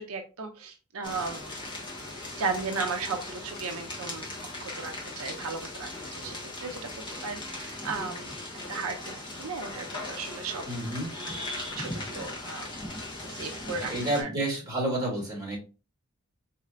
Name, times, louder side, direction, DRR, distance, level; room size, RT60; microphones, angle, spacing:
voice 1, 0.0-1.4 2.4-4.3 4.6-6.9 7.2-8.3 8.7-10.6 11.0-12.7 13.2-14.3, right 4 dB, 70° right, 5 dB, 0.5 m, -36 dB
sound 1, 1.0-14.2, left 2 dB, 20° left, 1.3 m, -38 dB
voice 2, 10.7-11.1 13.9-15.6, right 1 dB, 20° right, -2 dB, 2.5 m, -30 dB
4.2 x 4.1 x 2.5 m, 0.32 s
head